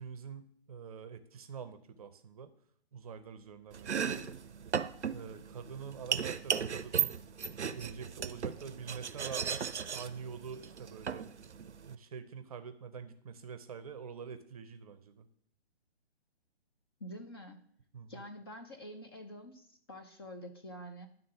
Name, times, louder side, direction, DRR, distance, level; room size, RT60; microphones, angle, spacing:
voice 1, 0.0-2.5 2.9-4.3 5.1-7.2 7.7-11.3 11.8-15.3 17.9-18.2, right 6 dB, 35° right, 10 dB, 0.6 m, -46 dB
Domestic sounds home sounds, 3.7-11.9, right 7 dB, 85° right, 0.6 m, -36 dB
voice 2, 17.0-17.6 18.1-21.1, equal, 25° left, 5 dB, 0.5 m, -47 dB
11.0 x 3.8 x 5.7 m, 0.64 s
figure-of-eight pair, 140°, 33 cm